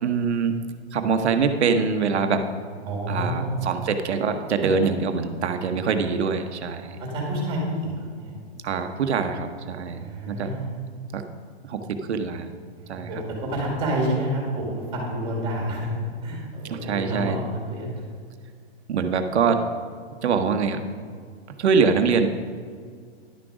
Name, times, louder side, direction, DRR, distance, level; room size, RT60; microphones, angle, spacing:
voice 1, 0.0-0.6 0.9-2.5 3.1-7.0 8.6-10.5 11.1-11.2 11.6-12.5 12.9-13.1 16.7-17.4 18.9-19.7 20.2-20.8 21.6-22.3, right 5 dB, 80° right, 7 dB, 1.0 m, -24 dB
voice 2, 2.9-3.7 5.4-5.9 6.8-8.3 10.0-10.7 12.8-15.9 16.2-18.0, right 1 dB, 15° right, -2 dB, 2.1 m, -29 dB
11.0 x 6.2 x 4.8 m, 2.1 s
hypercardioid pair, 165°, 33 cm